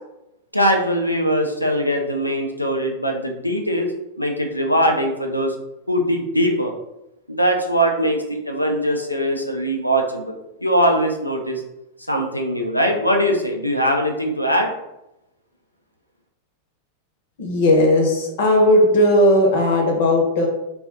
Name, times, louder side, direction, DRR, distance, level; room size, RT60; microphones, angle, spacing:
voice 1, 0.5-3.9 4.2-5.5 5.9-6.7 7.3-11.6 12.1-14.7, equal, 90° left, 2 dB, 0.4 m, -21 dB
voice 2, 17.4-20.5, left 1 dB, 55° left, 1 dB, 0.8 m, -16 dB
2.4 x 2.3 x 3.6 m, 0.89 s
figure-of-eight pair, 90°, 0 cm